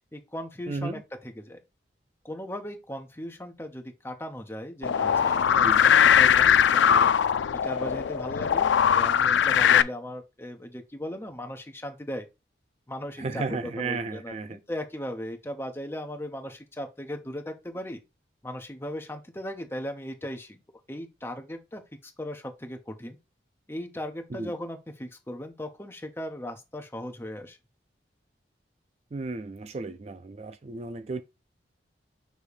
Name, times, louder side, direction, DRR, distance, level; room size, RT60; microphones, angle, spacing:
voice 1, 0.1-1.6 2.2-12.3 12.9-18.0 18.4-20.6 20.9-23.2 23.7-27.6, equal, 15° left, 0.8 m, -37 dB
voice 2, 0.7-1.0 5.6-5.8 13.2-14.6 24.3-24.5 29.1-31.2, right 3 dB, 35° right, 0.4 m, -34 dB
sound 1, 4.8-9.8, left 8 dB, 75° left, 0.4 m, -20 dB
6.7 x 3.1 x 4.8 m
head